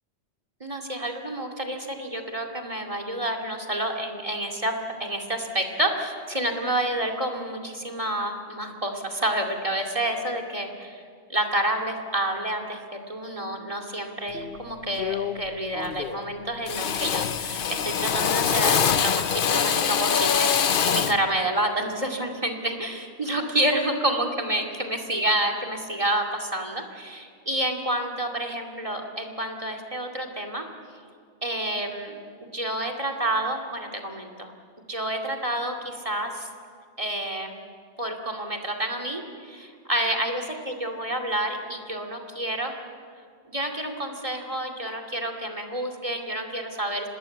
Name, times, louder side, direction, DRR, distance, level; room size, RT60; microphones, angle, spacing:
voice 1, 0.6-4.7 5.0-11.0 11.3-30.6 31.4-34.5 34.9-36.5 37.0-37.6 38.0-42.7 43.5-47.1, right 1 dB, 30° right, 5 dB, 2.4 m, -29 dB
Drill, 14.3-14.6 15.0-15.5 15.7-16.3 16.6-21.3, left 7 dB, 55° left, 0.9 m, -24 dB
26.5 x 19.5 x 8.2 m, 2.2 s
omnidirectional pair, 1.2 m